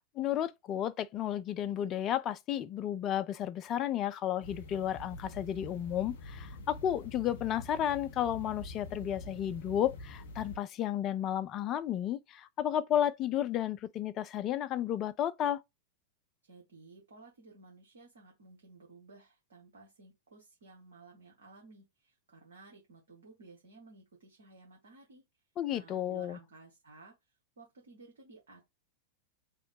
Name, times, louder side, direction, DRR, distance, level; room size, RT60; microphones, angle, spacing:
voice 1, 0.2-15.6 25.6-26.4, left 11 dB, 35° left, 0.3 m, -32 dB
sound 1, 4.4-10.6, left 2 dB, 60° left, 0.7 m, -46 dB
voice 2, 16.4-25.2 25.7-28.7, right 3 dB, 65° right, 1.1 m, -56 dB
2.9 x 2.0 x 4.0 m
figure-of-eight pair, 90°, 0 cm